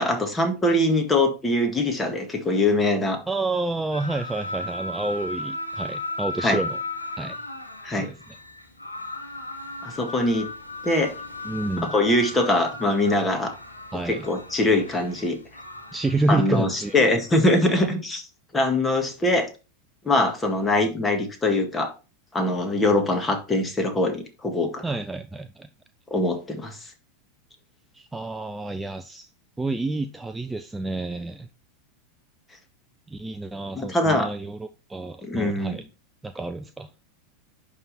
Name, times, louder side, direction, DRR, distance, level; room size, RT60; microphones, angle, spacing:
voice 1, 0.0-3.2 6.4-6.6 7.8-8.1 9.8-10.5 10.8-11.1 11.9-13.5 14.1-15.4 16.3-18.3 18.5-19.5 20.1-21.9 22.3-24.8 26.1-26.8 33.8-34.3 35.2-35.8, left 1 dB, 15° left, 1.8 m, -22 dB
voice 2, 3.3-6.8 7.2-7.4 7.9-8.4 11.4-11.9 13.9-14.3 15.9-17.1 17.7-17.9 24.8-25.7 27.9-29.3 29.6-31.5 33.1-35.8 36.2-36.9, right 2 dB, 10° right, 0.5 m, -29 dB
sound 1, 3.9-17.7, left 2 dB, 90° left, 1.5 m, -36 dB
10.5 x 3.7 x 4.2 m
figure-of-eight pair, 85°, 0 cm